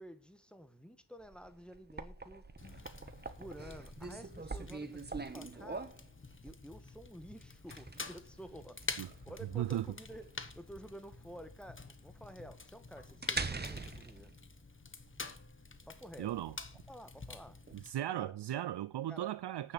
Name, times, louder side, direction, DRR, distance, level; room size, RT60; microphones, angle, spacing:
voice 1, 0.0-2.4 3.4-5.9 6.4-8.8 9.2-14.3 15.9-16.3 16.9-17.6 18.1-18.3 19.1-19.3, equal, ahead, 1.4 m, -51 dB
sound 1, 1.2-17.7, right 3 dB, 25° right, 1.2 m, -45 dB
Fire, 2.6-17.9, left 4 dB, 25° left, 1.2 m, -48 dB
voice 2, 9.5-9.9 16.2-16.5 17.7-19.7, right 12 dB, 70° right, 0.5 m, -36 dB
9.2 x 6.6 x 8.0 m
cardioid pair, 75°, 44 cm